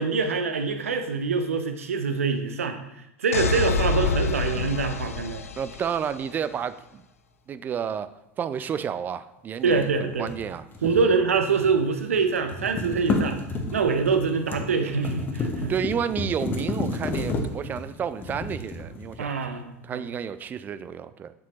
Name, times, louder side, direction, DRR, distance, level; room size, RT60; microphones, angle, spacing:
voice 1, 0.0-2.8 3.2-5.4 9.6-10.3 10.8-13.4 13.7-15.7 19.2-20.0, right 5 dB, 70° right, 7 dB, 0.7 m, -25 dB
sound 1, 3.3-6.2, left 5 dB, 75° left, 0.4 m, -27 dB
voice 2, 5.6-7.0 7.5-8.1 8.4-10.7 15.7-19.3 19.8-21.3, right 8 dB, 25° right, 14 dB, 0.3 m, -31 dB
sound 2, 9.6-11.9 12.2-19.5, left 3 dB, 25° left, 1.0 m, -32 dB
7.2 x 6.2 x 2.9 m, 0.86 s
figure-of-eight pair, 75°, 8 cm